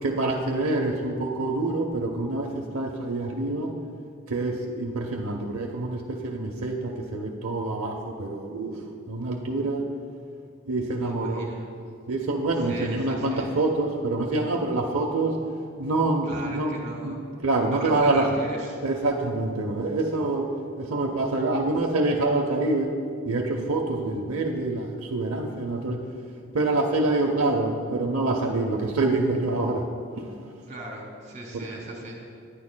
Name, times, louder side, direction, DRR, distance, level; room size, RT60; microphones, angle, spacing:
voice 1, 0.0-3.7 4.3-8.8 9.1-9.9 10.7-11.5 12.1-15.4 15.8-16.7 17.0-17.2 17.4-18.3 18.8-22.9 23.2-26.0 26.5-29.9 30.2-30.3 31.5-31.7, right 2 dB, 75° right, 1 dB, 0.7 m, -26 dB
voice 2, 11.0-11.7 12.6-13.5 16.3-17.3 17.7-18.8 30.7-32.2, right 2 dB, 35° right, -1 dB, 2.3 m, -38 dB
18.5 x 10.0 x 2.2 m, 2.3 s
head